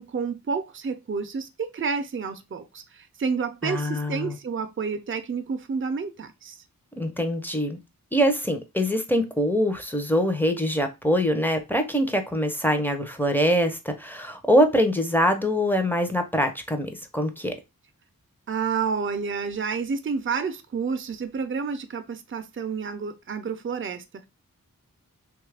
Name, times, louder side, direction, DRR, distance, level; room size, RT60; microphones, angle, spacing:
voice 1, 0.0-6.6 18.5-24.3, right 5 dB, 35° right, 0.5 m, -30 dB
voice 2, 3.6-4.4 7.0-7.8 8.1-17.5, equal, 5° left, 0.6 m, -24 dB
3.1 x 2.4 x 3.2 m
wide cardioid pair, 45°, 35 cm